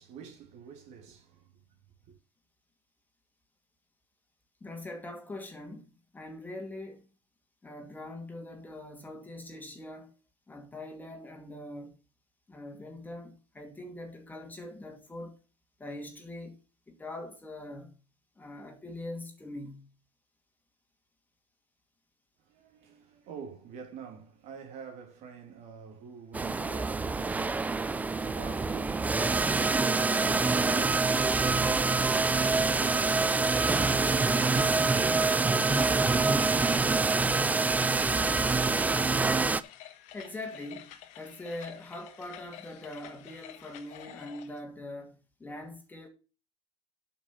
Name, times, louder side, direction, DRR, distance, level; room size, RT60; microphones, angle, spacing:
voice 1, 0.0-1.6 2.0-2.2 22.4-32.0, right 6 dB, 55° right, 2.9 m, -46 dB
voice 2, 4.6-7.1 7.6-10.1 10.5-12.0 12.5-15.4 15.8-18.0 18.4-19.9 40.1-46.1, left 1 dB, 10° left, 2.4 m, -43 dB
sound 1, 26.3-39.6, right 3 dB, 10° right, 0.5 m, -26 dB
sound 2, 31.7-44.6, left 12 dB, 60° left, 1.5 m, -50 dB
8.5 x 6.3 x 5.8 m
supercardioid pair, 120°, 14 cm